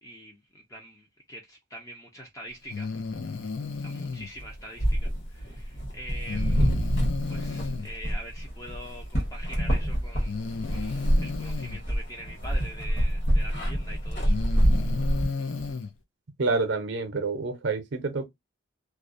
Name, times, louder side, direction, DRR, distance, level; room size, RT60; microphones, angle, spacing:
voice 1, 0.0-2.9 3.8-6.7 7.3-10.4 10.7-14.9, equal, 15° left, 0.4 m, -44 dB
Breathing, 2.7-4.3 6.3-7.9 9.2-9.3 10.2-11.8 13.3-13.4 14.1-15.9, left 4 dB, 80° left, 0.5 m, -33 dB
sound 1, 4.4-15.3, equal, 55° left, 1.1 m, -28 dB
sound 2, 7.2-15.7, equal, 40° left, 0.9 m, -31 dB
voice 2, 16.4-18.3, right 3 dB, 65° right, 0.6 m, -28 dB
2.3 x 2.1 x 2.4 m
head